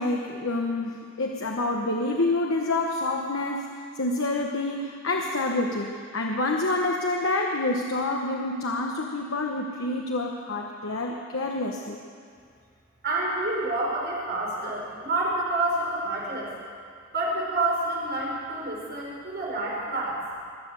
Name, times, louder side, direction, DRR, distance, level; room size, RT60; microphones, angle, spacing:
voice 1, 0.0-3.7 4.0-12.0, left 2 dB, 80° left, 1 dB, 1.1 m, -27 dB
voice 2, 13.0-16.5 17.1-20.2, right 2 dB, 55° right, -4 dB, 4.6 m, -28 dB
22.5 x 7.6 x 8.0 m, 2.1 s
head